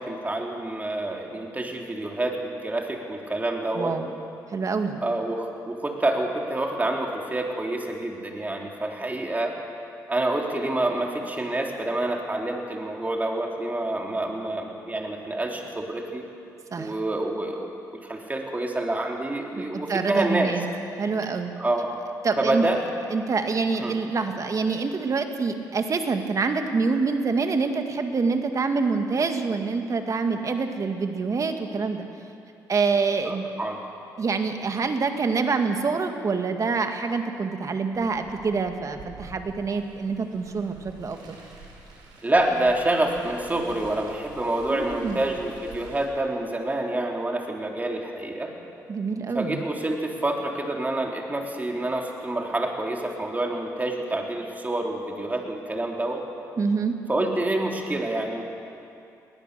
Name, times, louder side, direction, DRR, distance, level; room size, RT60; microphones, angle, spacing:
voice 1, 0.0-3.9 5.0-9.6 10.1-16.2 16.7-20.5 21.6-21.9 22.4-22.8 23.8-23.9 33.2-33.8 42.2-48.5 49.3-56.2 57.1-58.4, right 2 dB, 20° right, 1 dB, 3.6 m, -27 dB
voice 2, 3.7-4.1 4.5-5.0 16.7-16.9 19.6-20.7 21.0-21.5 22.2-22.7 23.1-32.1 32.7-33.5 34.2-41.4 44.7-45.2 48.9-49.6 56.6-57.0, right 4 dB, 45° right, 6 dB, 1.9 m, -26 dB
Car, 37.9-46.1, right 3 dB, 75° right, 5.1 m, -47 dB
20.5 x 19.0 x 6.9 m, 2.6 s
supercardioid pair, 65°, 8 cm